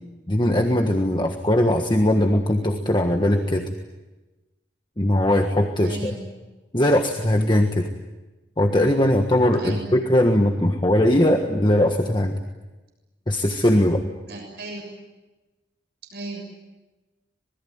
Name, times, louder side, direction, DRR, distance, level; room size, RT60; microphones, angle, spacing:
voice 1, 0.3-3.7 5.0-6.1 6.7-7.9 8.6-12.4 13.3-14.0, left 1 dB, 25° left, 4 dB, 1.5 m, -20 dB
voice 2, 5.8-6.3 9.6-9.9 14.3-14.9 16.1-16.4, right 2 dB, 60° right, 2 dB, 6.9 m, -35 dB
26.5 x 21.0 x 9.6 m, 1.1 s
head